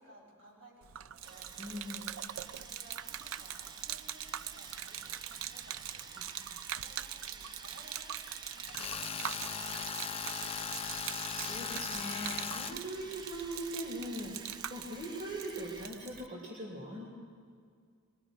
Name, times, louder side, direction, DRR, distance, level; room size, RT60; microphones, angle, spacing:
voice 1, 0.0-1.5 1.8-1.9 2.3-10.9, right 1 dB, 65° right, -4 dB, 6.1 m, -59 dB
Gurgling / Liquid, 0.8-16.3, right 11 dB, 80° right, 0.4 m, -43 dB
Sawing, 1.2-15.9, right 3 dB, 20° right, 0.7 m, -50 dB
voice 2, 1.6-2.2 6.1-6.7 11.3-17.1, right 1 dB, 40° right, -4 dB, 3.3 m, -41 dB
Tools, 8.7-12.7, left 7 dB, 30° left, 0.6 m, -38 dB
23.5 x 22.0 x 5.1 m, 2.1 s
head